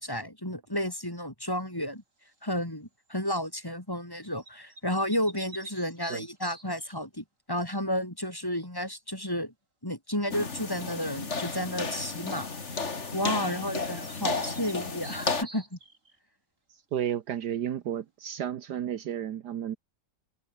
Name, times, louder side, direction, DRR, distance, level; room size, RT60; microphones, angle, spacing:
voice 1, 0.0-2.0 2.4-9.5 9.8-12.5 12.7-15.8, equal, 10° left, 4.0 m, -32 dB
sound 1, 2.2-2.6 4.4-7.0 13.4-13.5 13.7-16.2, right 2 dB, 45° right, 5.0 m, -49 dB
sound 2, 10.3-15.4, left 4 dB, 40° left, 2.7 m, -33 dB
voice 2, 16.9-19.8, right 10 dB, 70° right, 1.5 m, -32 dB
omnidirectional pair, 1.9 m